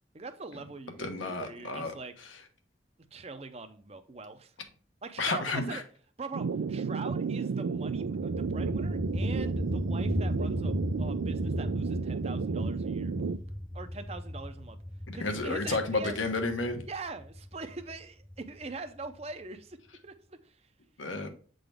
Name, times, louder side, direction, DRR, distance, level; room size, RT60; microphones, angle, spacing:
voice 1, 0.1-2.1 3.1-4.5 5.0-5.8 6.2-13.1 13.7-14.8 15.1-16.2 16.9-19.8 20.0-20.7, right 3 dB, 30° right, 9 dB, 0.6 m, -42 dB
voice 2, 1.0-1.9 2.2-2.4 5.2-5.8 15.1-16.8 21.0-21.3, left 3 dB, 85° left, 5 dB, 1.1 m, -31 dB
sound 1, 6.3-13.4, right 5 dB, 90° right, 0.4 m, -32 dB
sound 2, 7.7-19.3, left 1 dB, 5° left, 0.7 m, -36 dB
7.8 x 3.9 x 3.4 m, 0.43 s
head